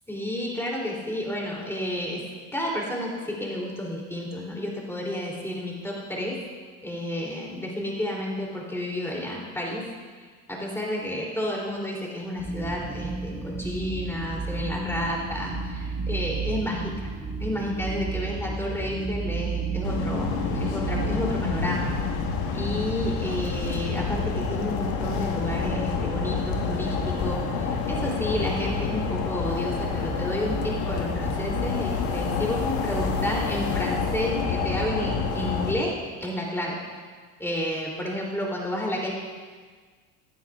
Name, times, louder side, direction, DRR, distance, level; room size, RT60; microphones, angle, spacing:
voice 1, 0.1-2.2 2.5-6.4 6.8-9.9 10.5-17.1 17.4-21.9 22.5-36.8 37.4-39.1, left 1 dB, 5° left, -2 dB, 3.0 m, -31 dB
sound 1, 12.4-21.8, right 4 dB, 15° right, 1.4 m, -32 dB
sound 2, 19.8-35.7, left 4 dB, 50° left, 1.5 m, -28 dB
16.0 x 9.5 x 2.4 m, 1.5 s
hypercardioid pair, 75°, 45 cm